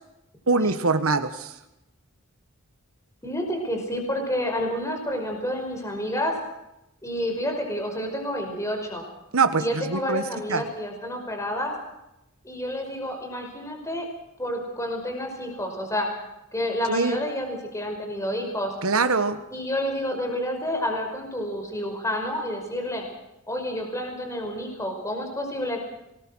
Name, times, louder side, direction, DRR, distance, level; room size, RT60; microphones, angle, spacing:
voice 1, 0.5-1.5 9.3-10.2 10.5-10.6 16.9-17.2 18.8-19.4, right 4 dB, 75° right, 9 dB, 1.5 m, -23 dB
voice 2, 3.2-6.3 7.0-9.0 9.6-11.7 12.4-14.1 14.4-16.1 16.5-18.7 19.5-23.0 23.5-25.9, equal, 15° left, 3 dB, 5.4 m, -29 dB
25.5 x 20.5 x 6.4 m, 0.90 s
head